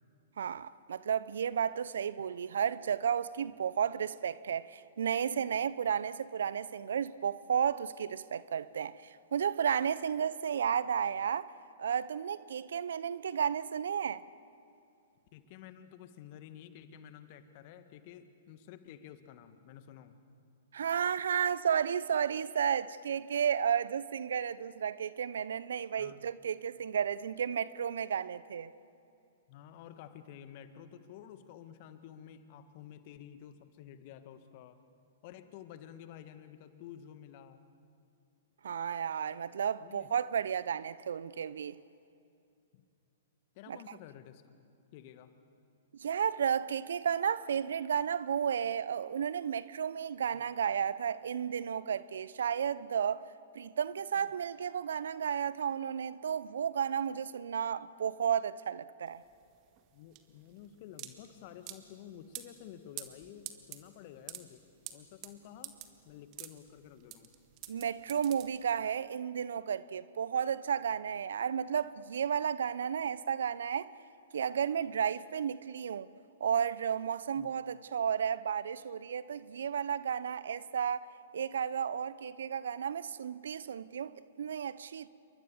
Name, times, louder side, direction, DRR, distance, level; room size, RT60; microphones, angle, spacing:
voice 1, 0.4-11.5 11.8-14.2 20.7-28.7 38.6-41.8 43.7-43.8 45.9-53.2 53.5-59.2 67.7-73.9 74.3-76.1 76.4-85.1, right 8 dB, 70° right, 0.7 m, -33 dB
voice 2, 15.3-20.2 26.0-26.2 29.5-34.8 35.2-37.6 39.8-40.1 42.7-42.8 43.6-44.4 44.9-45.3 50.3-50.4 59.9-64.7 64.9-65.8 66.0-67.3 77.4-77.5, left 10 dB, 45° left, 1.7 m, -51 dB
sound 1, 59.1-69.0, right 14 dB, 40° right, 1.9 m, -48 dB
28.5 x 23.5 x 7.1 m
figure-of-eight pair, 110°, 0 cm